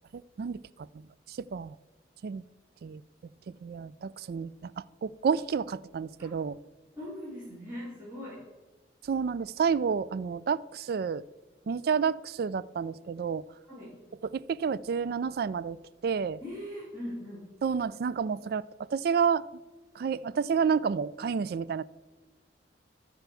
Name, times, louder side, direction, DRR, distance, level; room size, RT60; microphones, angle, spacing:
voice 1, 0.1-0.6 0.9-1.8 2.2-2.4 2.8-3.0 3.6-6.6 9.1-11.2 11.7-13.4 14.3-15.8 16.0-16.4 17.6-19.4 20.0-21.8, right 6 dB, 55° right, 0.3 m, -30 dB
voice 2, 6.9-8.4 13.6-14.0 16.4-17.5, left 1 dB, 15° right, 3.1 m, -40 dB
12.5 x 4.5 x 6.8 m
head